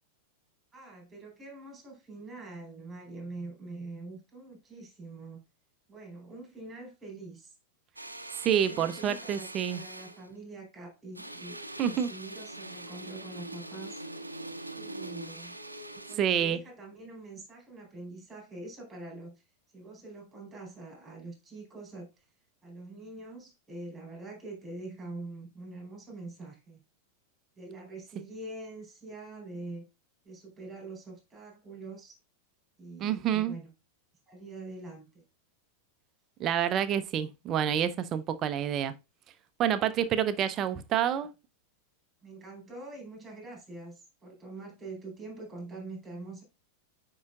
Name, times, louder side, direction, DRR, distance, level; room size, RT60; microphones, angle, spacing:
voice 1, 0.7-5.4 5.9-7.6 8.5-14.0 14.8-15.6 16.1-19.3 19.7-22.2 22.6-26.8 27.6-29.9 30.2-32.2 32.8-33.7 34.3-35.2 41.2-41.3 42.2-46.4, right 2 dB, 10° right, 3.9 m, -44 dB
sound 1, 8.0-10.3 11.1-16.2, right 1 dB, 85° right, 0.6 m, -43 dB
voice 2, 8.3-9.8 11.8-12.1 16.2-16.6 33.0-33.6 36.4-38.9 39.6-41.3, right 9 dB, 30° right, 0.7 m, -28 dB
9.5 x 4.8 x 2.4 m
figure-of-eight pair, 90°, 0 cm